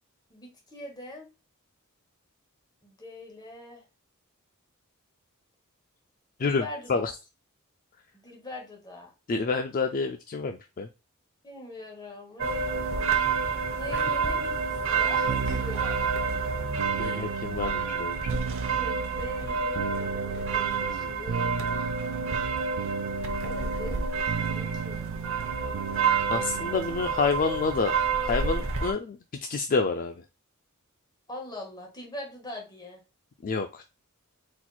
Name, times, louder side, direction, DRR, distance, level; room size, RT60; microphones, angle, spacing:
voice 1, 0.3-1.3 2.8-3.8 6.4-7.1 8.1-9.1 11.4-13.2 13.7-16.2 16.9-17.4 18.8-21.6 23.4-25.2 31.3-33.0, left 1 dB, 20° left, 0 dB, 1.5 m, -42 dB
voice 2, 6.4-7.1 9.3-10.9 17.0-18.3 26.3-27.9 28.2-29.2 29.5-30.2 33.4-33.8, left 4 dB, 40° left, 6 dB, 0.4 m, -28 dB
sound 1, 12.4-28.9, right 5 dB, 65° right, 0.8 m, -29 dB
sound 2, 15.3-27.1, right 7 dB, 85° right, 0.3 m, -36 dB
4.3 x 4.2 x 2.2 m, 0.29 s
head